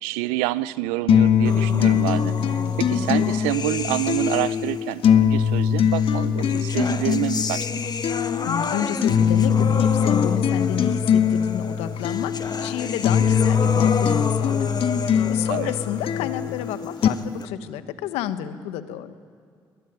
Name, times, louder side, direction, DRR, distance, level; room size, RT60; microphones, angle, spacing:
voice 1, 0.0-7.9 15.5-15.7, right 17 dB, 80° right, 18 dB, 0.7 m, -28 dB
sound 1, 1.1-17.1, left 8 dB, 60° left, 1.5 m, -22 dB
sound 2, 1.5-4.9 5.9-17.5, left 5 dB, 40° left, 1.8 m, -31 dB
voice 2, 8.4-14.7 15.0-19.1, left 10 dB, 80° left, 12 dB, 1.3 m, -30 dB
22.0 x 20.5 x 9.4 m, 2.2 s
hypercardioid pair, 45°, 10 cm